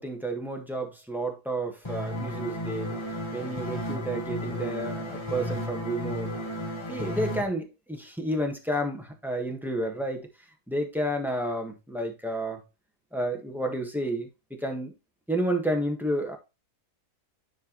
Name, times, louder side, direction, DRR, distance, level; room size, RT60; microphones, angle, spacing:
voice 1, 0.0-3.0 3.3-6.3 6.9-10.3 10.7-12.6 13.1-14.3 14.6-14.9 15.3-16.4, right 1 dB, ahead, 1.4 m, -30 dB
sound 1, 1.9-7.4, equal, 20° left, 1.4 m, -33 dB
10.5 x 4.7 x 3.1 m
omnidirectional pair, 1.5 m